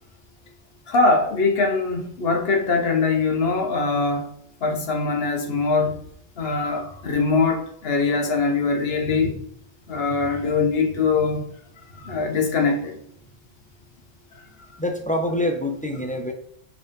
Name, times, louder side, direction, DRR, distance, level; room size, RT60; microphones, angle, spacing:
voice 1, 0.9-4.3 4.6-6.0 6.4-9.4 9.9-11.5 11.9-13.0, left 4 dB, 55° left, 2 dB, 1.3 m, -22 dB
voice 2, 14.8-16.3, left 1 dB, 10° left, 3 dB, 0.6 m, -25 dB
4.8 x 3.7 x 5.3 m, 0.67 s
omnidirectional pair, 1.2 m